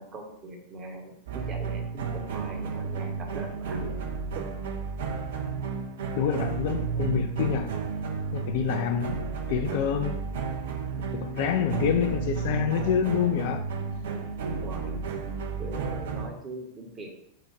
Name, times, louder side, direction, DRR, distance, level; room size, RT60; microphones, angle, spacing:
voice 1, 0.0-4.1 4.3-4.5 14.6-15.0 15.6-17.1, right 2 dB, 30° right, 0.9 m, -41 dB
sound 1, 1.3-16.3, right 5 dB, 60° right, 0.5 m, -32 dB
voice 2, 6.2-7.8 8.3-10.2 11.1-13.7, left 8 dB, 50° left, 0.3 m, -27 dB
4.7 x 2.2 x 4.5 m
figure-of-eight pair, 90°, 0 cm